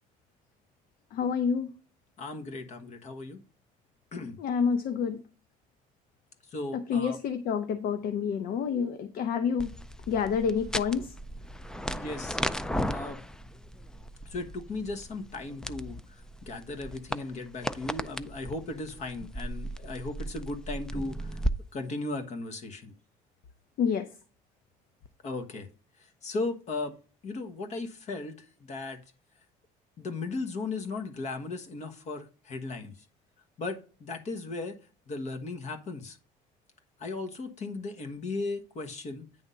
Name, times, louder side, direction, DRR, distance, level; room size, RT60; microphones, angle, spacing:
voice 1, 1.1-1.7 4.4-5.2 6.7-9.7 10.1-11.1 23.8-24.1, left 6 dB, 65° left, 0.8 m, -28 dB
voice 2, 2.2-3.4 4.1-4.4 6.5-7.2 11.9-12.4 12.9-13.2 14.3-21.4 21.7-22.9 25.2-25.7 26.0-26.9 27.2-29.0 30.0-32.9 33.6-34.8 35.1-36.2 37.0-39.3, left 3 dB, 45° left, 1.4 m, -36 dB
sound 1, 9.6-21.5, equal, 5° left, 0.4 m, -36 dB
9.6 x 3.5 x 5.6 m
cardioid pair, 120°, 16 cm